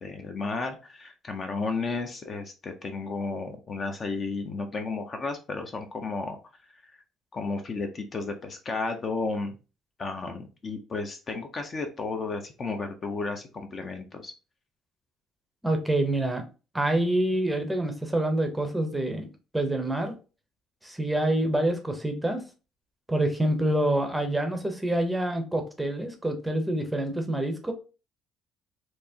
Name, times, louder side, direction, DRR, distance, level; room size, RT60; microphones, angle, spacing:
voice 1, 0.0-6.4 7.3-9.5 10.0-14.3, left 3 dB, 30° left, 5 dB, 0.6 m, -33 dB
voice 2, 15.6-16.4 16.7-19.3 19.5-20.1 20.8-22.4 23.1-27.7, right 1 dB, 5° right, 5 dB, 0.7 m, -26 dB
4.4 x 2.8 x 2.7 m, 0.32 s
cardioid pair, 155°, 0 cm